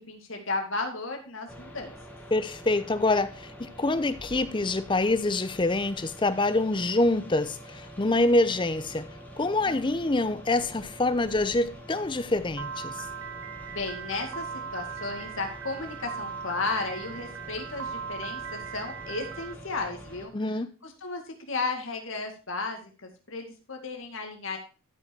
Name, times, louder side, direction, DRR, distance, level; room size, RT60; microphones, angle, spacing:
voice 1, 0.1-1.9 9.6-10.1 13.7-14.5 14.7-20.3 20.8-21.2 21.5-24.6, left 3 dB, 70° left, 2.1 m, -34 dB
sound 1, 1.5-20.3, equal, 5° left, 1.4 m, -46 dB
voice 2, 2.3-9.1 9.4-12.9 20.3-20.7, left 2 dB, 25° left, 0.6 m, -26 dB
Piano, 12.6-19.5, right 6 dB, 75° right, 0.6 m, -39 dB
12.5 x 5.4 x 4.6 m
head